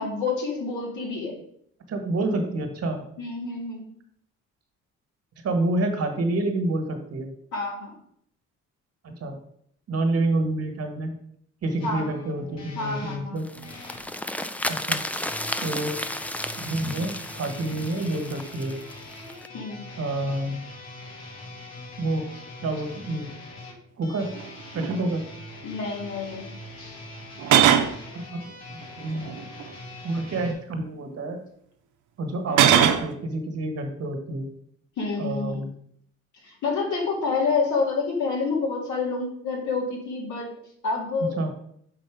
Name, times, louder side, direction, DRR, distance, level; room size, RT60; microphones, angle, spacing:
voice 1, 0.0-1.4 3.2-3.8 7.5-8.0 11.8-12.1 12.8-13.4 19.5-19.8 25.6-26.5 26.8-27.0 35.0-35.6 36.4-40.5 40.8-41.4, left 4 dB, 80° left, -1 dB, 2.1 m, -28 dB
voice 2, 1.9-3.0 5.4-7.3 9.0-9.4 9.9-11.2 11.6-13.5 14.7-15.0 15.6-15.9 16.6-18.8 20.0-20.6 22.0-22.3 22.6-23.3 24.0-24.3 24.7-25.3 28.1-28.4 29.0-29.3 30.0-31.4 32.2-34.5 35.2-35.7 41.2-41.5, right 2 dB, 55° right, 5 dB, 1.4 m, -28 dB
sound 1, 11.8-14.0 15.1-30.5, left 1 dB, 60° left, 1.9 m, -42 dB
sound 2, 13.4-19.5, left 1 dB, 5° left, 0.3 m, -33 dB
sound 3, 24.4-24.5 24.8-25.0 27.4-27.9 29.2-29.6 32.5-33.1, right 9 dB, 80° right, 0.7 m, -19 dB
5.6 x 4.0 x 4.9 m, 0.67 s
cardioid pair, 90°, 30 cm